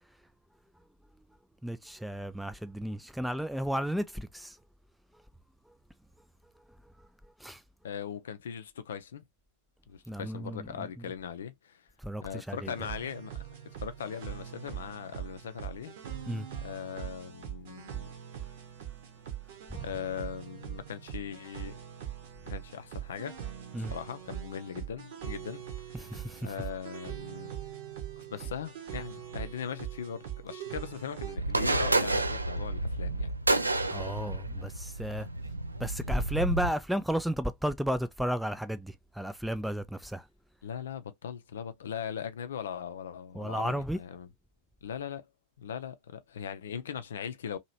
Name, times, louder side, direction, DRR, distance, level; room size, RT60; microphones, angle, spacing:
voice 1, 1.6-4.6 7.4-7.6 10.1-11.1 12.0-12.7 16.3-16.5 19.7-19.8 23.7-23.9 25.9-26.5 33.9-35.3 35.8-40.3 43.3-44.0, equal, ahead, 0.3 m, -33 dB
voice 2, 7.8-9.2 9.9-11.9 12.2-13.5 13.8-15.9 16.6-18.1 19.8-21.8 22.5-23.4 23.8-25.6 26.0-26.1 26.4-27.5 28.2-33.3 40.6-44.3 44.8-45.3 45.6-47.6, left 8 dB, 65° left, 0.5 m, -39 dB
sound 1, 12.7-31.4, right 10 dB, 55° right, 1.0 m, -42 dB
sound 2, 31.4-36.7, right 2 dB, 80° right, 0.4 m, -30 dB
2.9 x 2.7 x 2.6 m
figure-of-eight pair, 90°, 0 cm